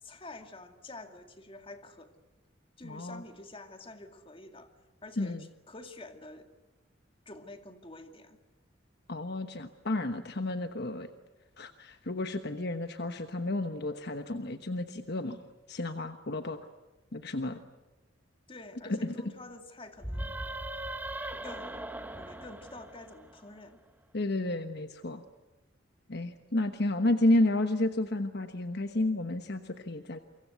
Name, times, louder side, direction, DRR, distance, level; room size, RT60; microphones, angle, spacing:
voice 1, 0.0-2.1 2.8-4.7 5.0-5.4 5.7-6.5 7.3-8.4 18.5-20.3 21.4-23.8, left 2 dB, 30° left, 6 dB, 2.3 m, -48 dB
voice 2, 2.8-3.2 5.2-5.5 9.1-11.1 11.6-15.4 15.7-16.6 17.1-17.6 18.8-19.1 24.1-25.2 26.1-30.2, left 1 dB, 55° left, 8 dB, 1.2 m, -31 dB
sound 1, 20.0-23.6, right 1 dB, 10° right, 1.3 m, -39 dB
29.0 x 24.5 x 8.2 m, 1.1 s
head